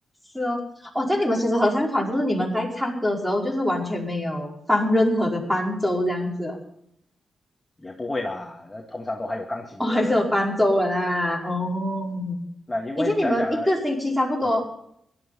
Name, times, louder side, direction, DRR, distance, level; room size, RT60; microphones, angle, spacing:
voice 1, 0.9-6.6 9.8-12.4 13.0-14.7, left 1 dB, 5° right, 0 dB, 5.1 m, -23 dB
voice 2, 7.8-10.2 12.7-13.7, left 2 dB, 15° left, 1 dB, 2.0 m, -30 dB
17.0 x 12.0 x 5.5 m, 0.72 s
cardioid pair, 85°, 0 cm